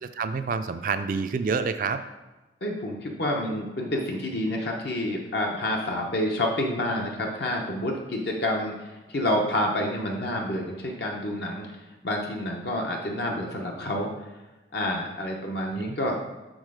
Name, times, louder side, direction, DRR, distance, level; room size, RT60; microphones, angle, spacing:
voice 1, 0.0-2.0 15.8-16.0, right 5 dB, 45° right, 9 dB, 0.3 m, -28 dB
voice 2, 2.6-11.7 12.0-14.1 14.7-16.2, left 1 dB, 65° left, 0 dB, 0.9 m, -28 dB
6.4 x 3.9 x 4.9 m, 1.1 s
head